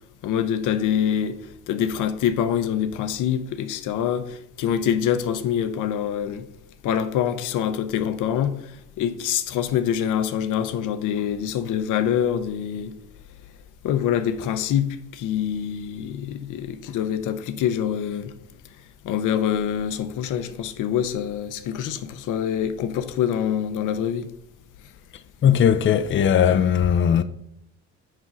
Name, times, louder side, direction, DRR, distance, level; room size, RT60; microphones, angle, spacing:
voice 1, 0.2-1.4 1.7-6.4 6.8-12.9 13.8-18.3 19.0-24.3, left 9 dB, 85° left, 0.7 m, -25 dB
voice 2, 25.4-27.2, left 8 dB, 40° left, 0.5 m, -18 dB
6.2 x 5.4 x 5.3 m
cardioid pair, 90°, 30 cm